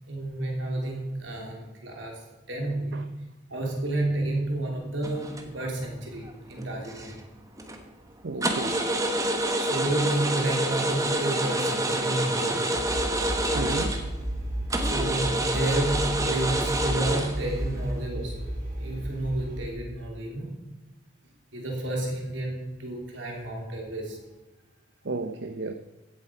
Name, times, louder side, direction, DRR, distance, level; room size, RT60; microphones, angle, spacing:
voice 1, 0.1-3.1 3.5-7.1 9.5-12.7 14.8-18.5 18.8-20.6 21.5-24.2, right 1 dB, 85° right, 3.4 m, -31 dB
sound 1, 5.0-5.8 6.2-7.2 7.6-7.8 8.4-14.2 14.7-18.0, right 1 dB, 15° right, 1.2 m, -28 dB
voice 2, 8.2-8.8 13.5-14.0 25.0-25.7, right 3 dB, 65° right, 0.7 m, -33 dB
sound 2, 12.7-19.7, equal, 40° right, 3.2 m, -33 dB
15.5 x 8.1 x 5.1 m
head